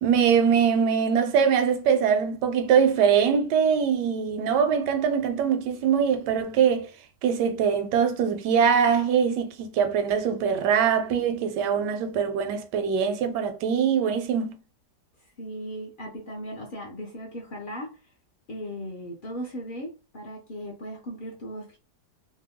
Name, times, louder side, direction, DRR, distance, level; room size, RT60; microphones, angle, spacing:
voice 1, 0.0-6.9 7.2-14.5, right 7 dB, 85° right, 1.2 m, -23 dB
voice 2, 15.4-17.9 18.5-21.8, equal, 65° left, 0.5 m, -37 dB
2.9 x 2.1 x 3.4 m
omnidirectional pair, 1.8 m